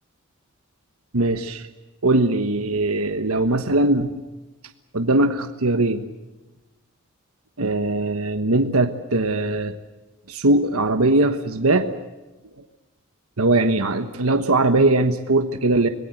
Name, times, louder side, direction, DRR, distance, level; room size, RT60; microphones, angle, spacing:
voice 1, 1.1-1.7 2.0-4.2 4.9-6.1 7.6-9.8 10.3-11.9 12.4-12.6 13.4-15.9, right 2 dB, 85° right, 8 dB, 1.3 m, -20 dB
25.5 x 21.0 x 8.0 m, 1.1 s
head